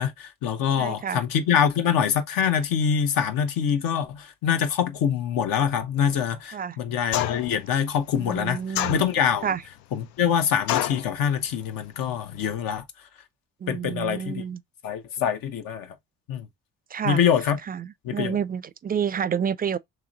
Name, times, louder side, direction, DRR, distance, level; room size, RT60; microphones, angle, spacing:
voice 1, 0.0-9.5 9.9-12.8 13.7-14.4 14.8-15.9 16.3-16.5 17.0-17.6 18.0-18.4, left 8 dB, 75° left, 0.9 m, -25 dB
voice 2, 0.8-1.2 6.5-6.8 8.1-9.1 9.4-9.6 13.6-14.6 16.9-17.2 17.7-19.8, right 8 dB, 25° right, 0.4 m, -29 dB
sound 1, 7.1-7.6 8.7-9.4 10.7-11.1, left 13 dB, 90° left, 0.5 m, -27 dB
3.1 x 2.9 x 3.7 m
supercardioid pair, 65°, 35 cm